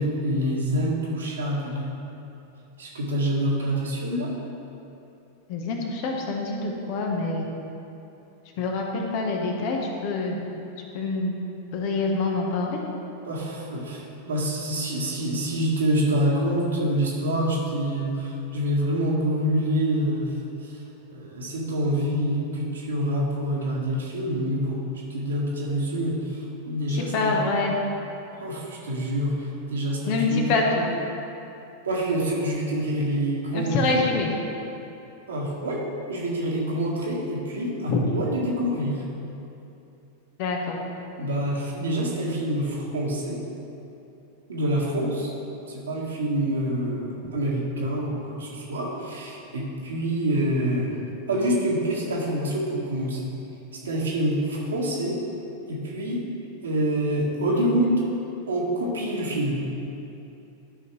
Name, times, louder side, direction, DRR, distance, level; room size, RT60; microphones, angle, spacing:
voice 1, 0.0-1.9 2.8-4.3 13.2-20.3 20.6-20.8 21.1-24.8 25.1-27.4 28.4-30.4 31.8-34.1 35.3-35.8 36.1-39.0 41.2-43.4 44.5-45.3 45.7-51.0 51.3-53.3 53.8-55.2 55.7-56.2 56.6-58.0 58.5-59.6, right 1 dB, 70° right, -3 dB, 1.7 m, -26 dB
voice 2, 5.5-7.5 8.6-10.4 10.9-11.4 11.7-12.8 26.9-27.8 30.1-30.8 33.5-34.3 37.9-38.0 40.4-40.8, left 3 dB, 45° left, 1 dB, 1.1 m, -26 dB
12.0 x 5.4 x 3.3 m, 2.8 s
figure-of-eight pair, 90°, 0 cm